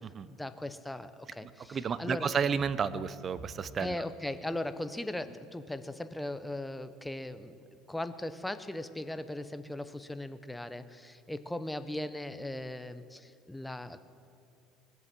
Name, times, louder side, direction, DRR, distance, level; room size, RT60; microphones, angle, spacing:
voice 1, 0.3-2.3 3.8-7.6 7.9-14.0, left 1 dB, 5° left, 12 dB, 0.7 m, -38 dB
voice 2, 1.4-4.0, right 6 dB, 35° right, 16 dB, 0.6 m, -32 dB
19.5 x 8.0 x 7.5 m, 2.5 s
supercardioid pair, 115°, 0 cm